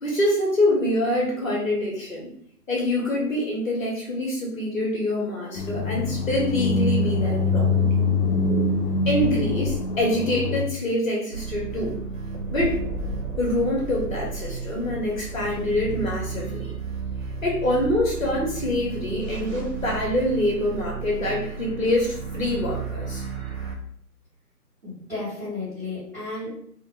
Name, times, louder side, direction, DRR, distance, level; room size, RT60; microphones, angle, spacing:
voice 1, 0.0-2.3 2.7-7.9 9.1-12.0 12.5-12.8 13.4-16.7 17.4-23.2, left 1 dB, 55° left, -3 dB, 1.0 m, -25 dB
sound 1, 5.5-10.6, left 3 dB, 85° left, 0.6 m, -23 dB
sound 2, 11.3-23.8, right 4 dB, 55° right, 0.9 m, -33 dB
voice 2, 24.8-26.5, left 3 dB, 10° right, -13 dB, 1.2 m, -33 dB
2.8 x 2.1 x 2.9 m, 0.65 s
hypercardioid pair, 165°, 48 cm